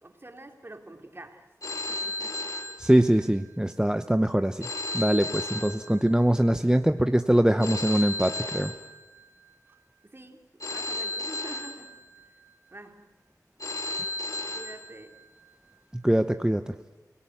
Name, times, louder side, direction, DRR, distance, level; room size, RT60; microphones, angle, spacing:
voice 1, 0.0-2.4 5.2-5.4 10.1-11.9 12.7-13.1 14.5-15.2, right 2 dB, 35° right, 4 dB, 3.2 m, -46 dB
Telephone, 1.6-3.5 4.6-6.5 7.6-9.5 10.6-12.5 13.6-15.5, left 2 dB, 55° left, 3.2 m, -35 dB
voice 2, 2.8-4.7 4.9-8.7 15.9-16.7, right 1 dB, 10° right, 8 dB, 0.8 m, -23 dB
29.5 x 18.0 x 9.4 m, 1.2 s
wide cardioid pair, 70°, 7 cm